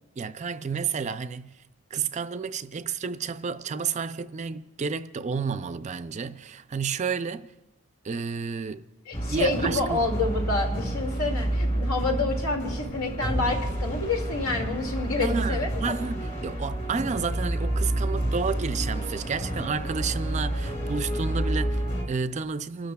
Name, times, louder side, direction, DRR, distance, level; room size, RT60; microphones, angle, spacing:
voice 1, 0.2-1.6 1.9-7.5 8.0-8.8 9.3-10.0 15.2-22.9, right 5 dB, 35° right, 0.3 m, -31 dB
voice 2, 9.1-15.9, left 3 dB, 80° left, 2.1 m, -28 dB
sound 1, 9.1-22.0, right 1 dB, 35° left, 2.9 m, -29 dB
30.0 x 12.5 x 2.3 m
head